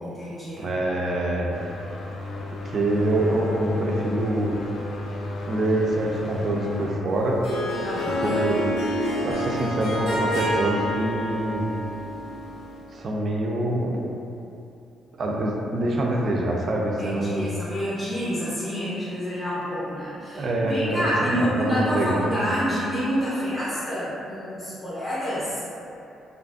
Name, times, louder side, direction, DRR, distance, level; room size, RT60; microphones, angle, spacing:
voice 1, 0.0-0.7 7.8-8.3 17.0-25.6, equal, 20° left, -9 dB, 0.6 m, -28 dB
voice 2, 0.6-1.5 2.6-4.6 5.5-7.4 8.2-8.8 9.2-11.7 12.9-14.0 15.2-17.5 20.3-22.3, right 1 dB, 50° right, -1 dB, 0.4 m, -25 dB
sound 1, 1.5-6.9, left 2 dB, 70° left, 0.4 m, -33 dB
Harp, 7.1-12.9, equal, 90° left, 0.9 m, -28 dB
2.5 x 2.4 x 2.3 m, 2.8 s
cardioid pair, 90°, 0 cm